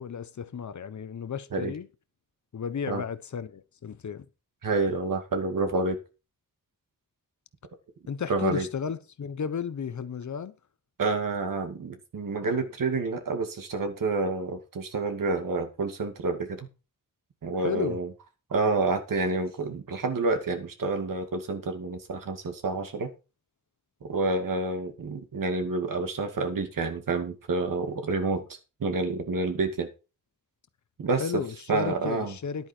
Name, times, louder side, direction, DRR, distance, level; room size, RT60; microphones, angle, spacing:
voice 1, 0.0-1.9 2.5-4.2 8.1-10.5 17.6-18.0 31.2-32.7, left 7 dB, 60° left, 1.1 m, -33 dB
voice 2, 4.6-6.0 8.3-8.7 11.0-16.7 17.4-18.1 18.5-23.1 24.0-28.4 28.8-29.9 31.0-31.4 31.7-32.3, right 3 dB, 80° right, 2.4 m, -28 dB
11.0 x 9.5 x 4.5 m
wide cardioid pair, 145°, 32 cm